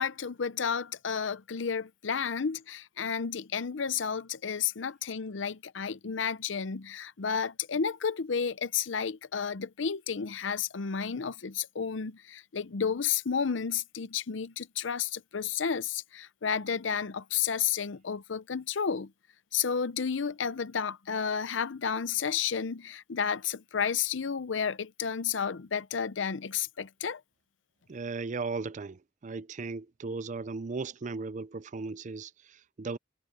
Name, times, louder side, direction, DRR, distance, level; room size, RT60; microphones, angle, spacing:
voice 1, 0.0-19.1 19.5-27.2, left 7 dB, 70° left, 0.7 m, -31 dB
voice 2, 27.9-33.0, right 4 dB, 40° right, 0.4 m, -37 dB
head